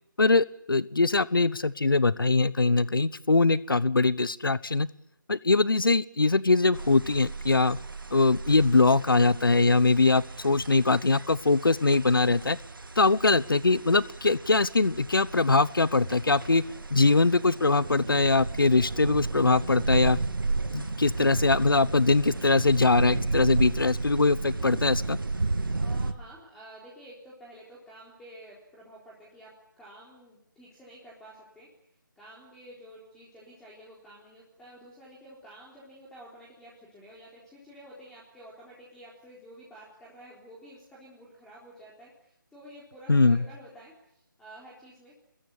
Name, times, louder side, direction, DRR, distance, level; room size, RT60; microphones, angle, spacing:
voice 1, 0.2-4.9 5.3-7.8 8.1-12.6 13.0-16.6 16.9-20.2 20.7-25.2 43.1-43.4, left 3 dB, 85° left, 19 dB, 1.0 m, -22 dB
sound 1, 6.7-26.1, right 3 dB, 80° right, 2.2 m, -33 dB
voice 2, 25.7-31.7 32.2-45.1, right 1 dB, 5° left, -5 dB, 4.1 m, -50 dB
27.0 x 21.5 x 8.5 m, 0.73 s
figure-of-eight pair, 160°, 11 cm